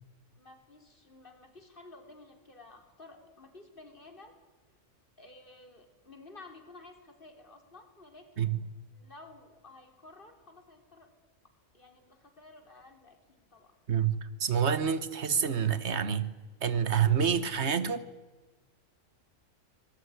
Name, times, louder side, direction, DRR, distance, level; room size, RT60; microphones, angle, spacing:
voice 1, 0.4-4.4 5.2-8.5 8.9-11.1 11.7-13.8, left 2 dB, 40° left, 5 dB, 3.7 m, -53 dB
voice 2, 13.9-16.3 16.6-18.0, right 7 dB, 55° right, 14 dB, 1.6 m, -28 dB
25.0 x 19.5 x 9.7 m, 1.2 s
omnidirectional pair, 1.4 m